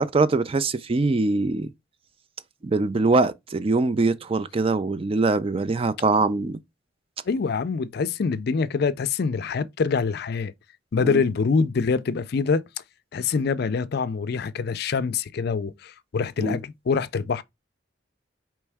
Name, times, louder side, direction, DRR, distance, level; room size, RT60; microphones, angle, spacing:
voice 1, 0.0-1.7 2.6-6.6 11.0-11.2 16.4-16.6, right 3 dB, 30° right, 0.4 m, -23 dB
voice 2, 7.3-10.5 10.9-12.6 13.1-17.4, left 5 dB, 60° left, 0.4 m, -25 dB
4.5 x 3.1 x 3.4 m
head